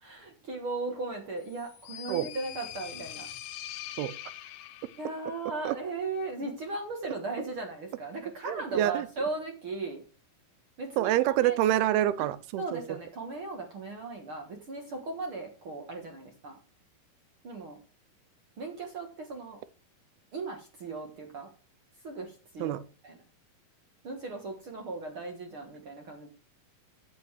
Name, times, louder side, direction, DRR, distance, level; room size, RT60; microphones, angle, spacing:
voice 1, 0.0-3.3 5.0-10.0 10.8-11.1 11.4-11.6 12.2-12.3 12.6-16.6 17.4-17.8 18.6-19.6 20.3-21.5 22.0-23.2 24.0-26.3, right 3 dB, 55° right, 1.4 m, -37 dB
sound 1, 1.5-5.2, left 13 dB, 80° left, 2.7 m, -43 dB
voice 2, 8.4-9.1 11.0-12.8 22.6-22.8, right 13 dB, 80° right, 2.5 m, -27 dB
8.3 x 7.8 x 4.7 m
omnidirectional pair, 4.5 m